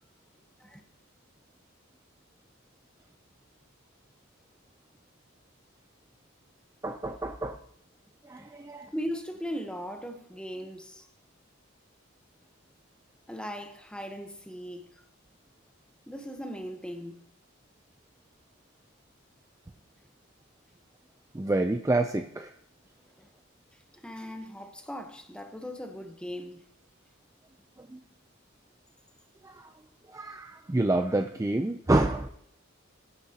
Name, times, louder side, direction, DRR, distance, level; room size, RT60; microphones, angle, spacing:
voice 1, 6.8-7.6 8.3-8.9 21.3-22.5 27.9-28.0 29.4-29.6 30.1-32.3, right 2 dB, 15° right, 0.4 m, -28 dB
voice 2, 8.9-11.1 13.3-15.0 16.1-17.2 23.2-23.3 24.0-26.6, equal, 5° left, 0.9 m, -38 dB
19.0 x 10.0 x 2.8 m
head